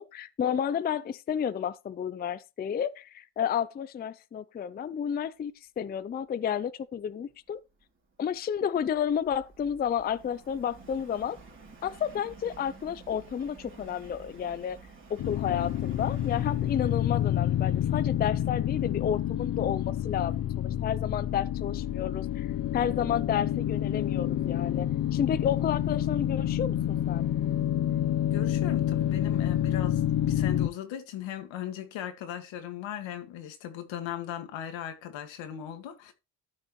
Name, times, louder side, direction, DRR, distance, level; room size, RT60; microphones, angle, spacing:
voice 1, 0.1-7.6 8.2-11.4 11.8-14.8 15.1-27.3, left 8 dB, 25° left, 0.4 m, -31 dB
Subway metro underground, 7.6-18.9, right 4 dB, 25° right, 3.1 m, -51 dB
sound 1, 15.2-30.7, left 11 dB, 50° left, 0.8 m, -28 dB
voice 2, 28.3-36.1, left 10 dB, 85° left, 1.9 m, -38 dB
12.5 x 6.6 x 3.1 m
cardioid pair, 140°, 44 cm